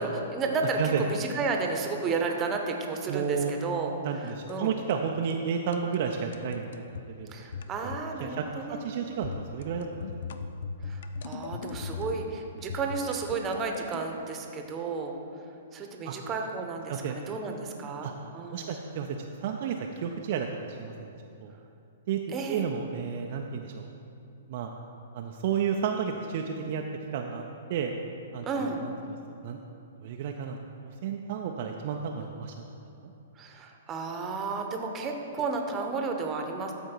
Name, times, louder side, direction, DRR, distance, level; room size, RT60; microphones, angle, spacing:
voice 1, 0.0-3.9 4.5-4.8 7.3-8.8 10.8-15.1 15.7-18.7 22.3-22.7 28.5-28.8 33.4-36.7, right 4 dB, 25° right, 3 dB, 0.9 m, -32 dB
voice 2, 3.1-3.5 4.0-7.3 8.2-10.1 16.0-16.1 16.9-17.2 18.0-18.1 18.5-21.1 21.4-21.5 22.1-23.9 24.5-24.7 25.1-26.8 27.1-27.4 27.7-27.9 28.3-29.2 29.4-29.6 30.0-32.6, right 7 dB, 50° right, 2 dB, 0.5 m, -32 dB
sound 1, 3.2-3.6 4.3-4.6 4.9-5.0 5.3-5.4 5.7-7.1 7.5-8.1 8.4-8.6 9.2-12.3 12.7-14.0, left 5 dB, 60° left, 0.4 m, -39 dB
12.5 x 4.5 x 4.5 m, 2.7 s
figure-of-eight pair, 115°, 0 cm